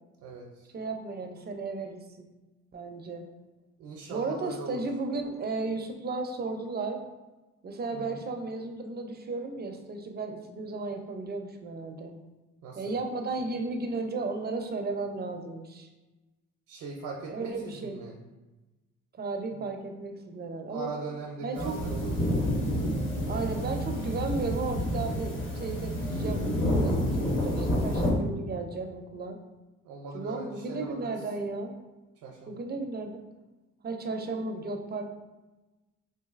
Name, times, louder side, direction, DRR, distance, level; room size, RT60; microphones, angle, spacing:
voice 1, 0.2-0.7 3.8-4.8 7.9-8.2 12.6-12.9 16.7-18.2 19.5-19.6 20.7-22.4 27.5-28.0 29.8-31.2 32.2-32.6, right 3 dB, 85° right, 0 dB, 0.5 m, -40 dB
voice 2, 0.7-2.3 2.7-3.3 4.1-7.0 7.6-12.1 12.8-15.9 17.3-18.0 19.1-20.9 21.4-21.8 23.3-29.4 30.1-31.7 32.5-33.2 33.8-35.0, right 3 dB, 35° right, 5 dB, 0.4 m, -34 dB
sound 1, 21.5-28.1, equal, 40° left, 0.9 m, -29 dB
3.9 x 2.6 x 2.4 m, 1.1 s
cardioid pair, 90°, 30 cm